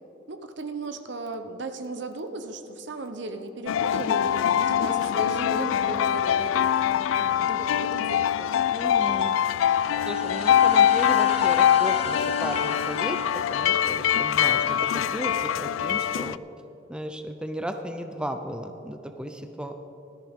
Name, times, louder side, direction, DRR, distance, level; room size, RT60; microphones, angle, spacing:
voice 1, 0.3-8.7, right 2 dB, 65° right, 8 dB, 0.8 m, -36 dB
sound 1, 3.7-16.4, left 10 dB, 90° left, 0.3 m, -23 dB
voice 2, 8.7-9.4 10.1-13.2 13.5-16.4 16.9-19.7, right 1 dB, 5° right, 6 dB, 0.5 m, -35 dB
sound 2, 9.6-14.5, left 4 dB, 30° left, 1.0 m, -37 dB
16.0 x 13.5 x 3.6 m, 3.0 s
head